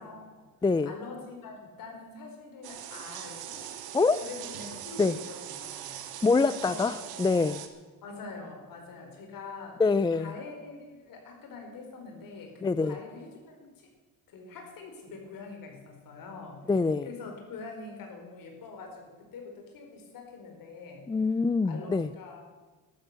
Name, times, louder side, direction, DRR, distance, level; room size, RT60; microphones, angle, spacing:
voice 1, 0.0-0.5 0.8-3.7 4.2-6.2 6.5-6.9 8.0-9.8 10.1-13.9 14.3-16.6 17.0-21.0 21.6-22.4, left 4 dB, 65° left, 2 dB, 4.8 m, -44 dB
voice 2, 0.6-0.9 3.9-4.2 5.0-5.2 6.2-7.6 9.8-10.3 12.6-13.0 16.7-17.1 21.1-22.1, left 4 dB, 15° left, 16 dB, 0.4 m, -25 dB
sound 1, 2.6-7.7, right 11 dB, 90° right, 1.6 m, -41 dB
13.5 x 13.0 x 6.9 m, 1.4 s
cardioid pair, 105°, 36 cm